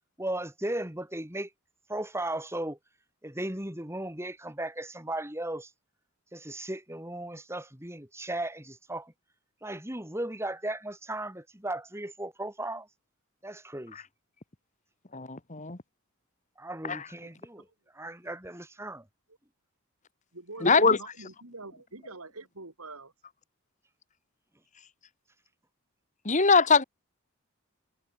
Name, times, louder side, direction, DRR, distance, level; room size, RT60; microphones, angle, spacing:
voice 1, 0.2-1.5 1.9-2.8 3.2-5.7 6.3-9.1 9.6-12.9 13.4-14.0 16.6-17.7 17.9-19.1, right 1 dB, 10° right, 3.5 m, -36 dB
voice 2, 15.1-15.8 16.9-17.0 20.6-21.0 26.2-26.8, left 4 dB, 35° left, 1.5 m, -22 dB
voice 3, 20.3-23.1, right 2 dB, 85° right, 4.0 m, -44 dB
head